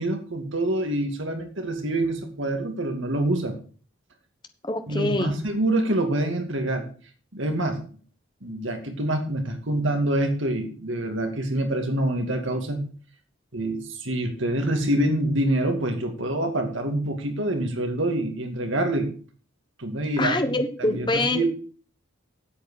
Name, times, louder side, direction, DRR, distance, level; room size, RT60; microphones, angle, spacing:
voice 1, 0.0-3.5 4.9-6.8 7.3-7.8 8.4-12.8 13.5-19.1 19.8-21.4, right 1 dB, 70° right, 4 dB, 2.4 m, -26 dB
voice 2, 4.6-5.4 20.2-21.4, left 2 dB, 20° left, 7 dB, 1.2 m, -25 dB
8.4 x 8.0 x 6.5 m, 0.41 s
head